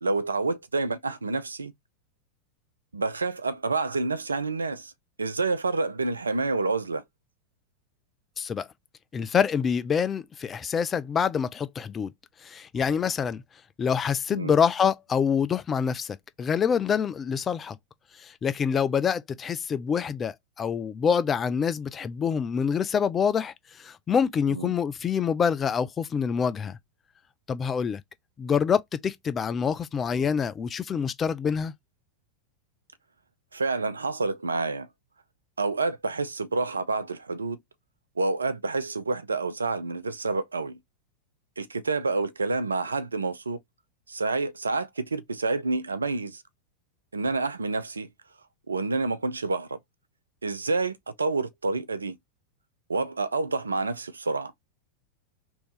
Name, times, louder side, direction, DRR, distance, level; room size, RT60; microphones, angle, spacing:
voice 1, 0.0-1.7 2.9-4.9 5.2-7.0 14.3-14.5 24.5-24.7 33.5-34.9 35.6-37.6 38.2-40.8 41.6-43.6 44.1-46.4 47.1-48.1 48.7-49.8 50.4-52.2 52.9-54.5, right 3 dB, 75° right, 0.5 m, -28 dB
voice 2, 8.4-8.7 9.1-12.1 12.4-13.4 13.8-17.8 18.2-26.8 27.5-28.0 28.4-31.7, left 7 dB, 20° left, 0.4 m, -26 dB
3.0 x 2.6 x 3.4 m
figure-of-eight pair, 90°, 0 cm